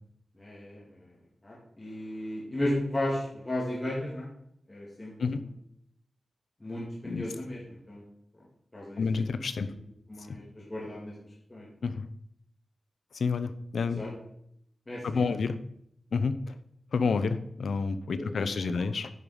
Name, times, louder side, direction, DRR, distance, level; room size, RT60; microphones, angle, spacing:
voice 1, 0.4-1.1 1.4-4.3 4.7-5.5 6.6-8.0 8.7-9.0 9.6-9.7 10.1-11.1 11.5-11.7 13.9-14.1 14.9-15.4 18.1-18.5, left 1 dB, 20° left, -5 dB, 2.3 m, -35 dB
voice 2, 9.0-9.7 11.8-12.0 13.1-14.0 15.0-15.6 16.1-16.5 16.9-19.1, left 4 dB, 80° left, 11 dB, 0.7 m, -29 dB
9.5 x 5.5 x 5.0 m, 0.72 s
wide cardioid pair, 120°, 0 cm